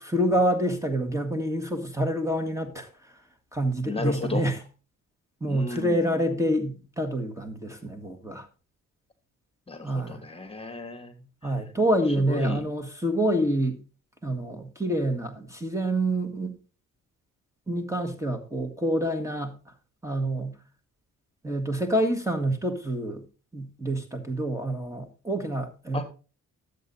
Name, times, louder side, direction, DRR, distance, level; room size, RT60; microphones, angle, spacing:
voice 1, 0.0-2.9 3.5-4.6 5.4-8.5 9.8-10.2 11.4-13.8 14.2-16.5 17.7-19.5 20.0-20.5 21.4-23.2 23.5-26.0, right 1 dB, 10° right, 1.7 m, -27 dB
voice 2, 3.9-4.4 5.5-6.5 9.7-11.2 11.4-11.6 12.1-12.6 13.4-13.5 25.9-26.0, left 3 dB, 20° left, 1.6 m, -34 dB
13.0 x 8.0 x 2.7 m
cardioid pair, 90°, 30 cm